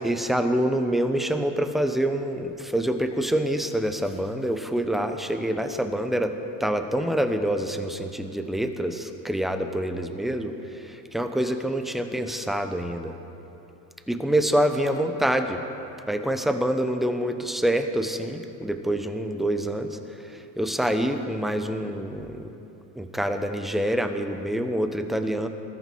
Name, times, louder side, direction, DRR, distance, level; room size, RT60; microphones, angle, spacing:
voice 1, 0.0-6.3 6.6-13.2 14.1-15.6 16.1-22.5 23.0-25.5, right 1 dB, ahead, 7 dB, 0.9 m, -26 dB
20.5 x 14.0 x 4.7 m, 2.9 s
supercardioid pair, 100°, 44 cm